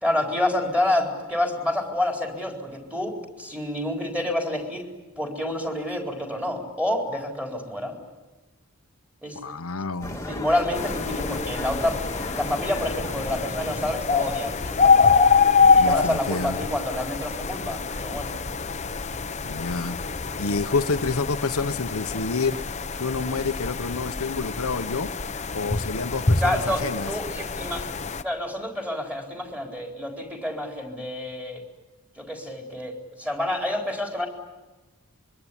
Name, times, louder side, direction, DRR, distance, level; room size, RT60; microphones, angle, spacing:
voice 1, 0.0-4.8 5.2-8.0 9.2-9.4 10.1-12.0 12.3-15.2 15.7-18.4 26.4-27.9 28.2-31.6 32.2-34.3, left 1 dB, 5° right, 2 dB, 4.1 m, -28 dB
voice 2, 9.4-10.2 15.7-16.7 19.4-20.0 20.4-25.1 25.5-27.1, left 4 dB, 70° left, 8 dB, 1.0 m, -28 dB
sound 1, 10.0-15.2, left 1 dB, 15° left, 2.0 m, -35 dB
sound 2, 10.7-28.2, left 5 dB, 30° left, 0.9 m, -25 dB
25.5 x 23.5 x 10.0 m, 1.2 s
head